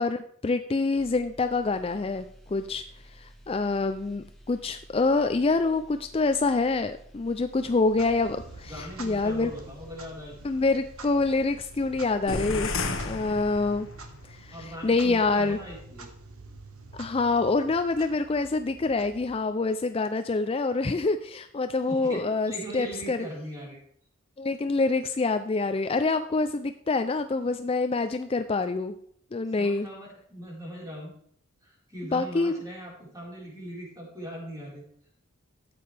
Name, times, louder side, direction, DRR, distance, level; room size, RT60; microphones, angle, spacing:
voice 1, 0.0-2.2 2.5-2.8 3.2-9.5 10.4-12.7 13.0-13.9 14.3-14.5 14.8-15.6 16.9-23.2 24.4-28.9 29.3-29.9 32.1-32.6, left 3 dB, 25° left, 9 dB, 0.4 m, -26 dB
sound 1, 0.9-14.1 14.4-14.6, right 1 dB, ahead, 1.3 m, -52 dB
Clock, 7.8-19.7, right 2 dB, 75° right, 1.4 m, -48 dB
voice 2, 8.7-10.4 14.5-16.1 21.9-23.8 29.5-31.1 31.6-34.8, right 1 dB, 15° right, -4 dB, 4.4 m, -40 dB
sound 2, 12.3-14.1, left 3 dB, 65° left, 1.3 m, -32 dB
13.5 x 8.6 x 3.4 m, 0.65 s
head